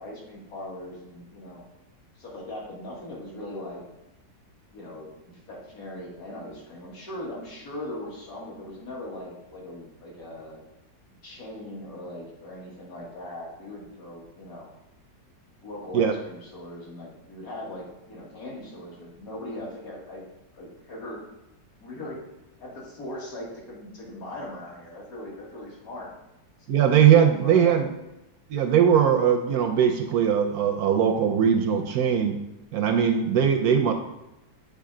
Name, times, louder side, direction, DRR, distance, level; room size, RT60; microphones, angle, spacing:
voice 1, 0.0-1.6 2.2-3.8 4.7-10.6 11.2-14.7 15.6-20.2 20.5-21.2 21.8-22.3 22.6-26.1 27.4-27.8, left 1 dB, 55° left, -3 dB, 2.0 m, -39 dB
voice 2, 26.7-27.9 28.5-32.4 32.7-33.9, right 8 dB, 70° right, 5 dB, 0.9 m, -20 dB
7.8 x 3.5 x 3.7 m, 0.93 s
omnidirectional pair, 1.9 m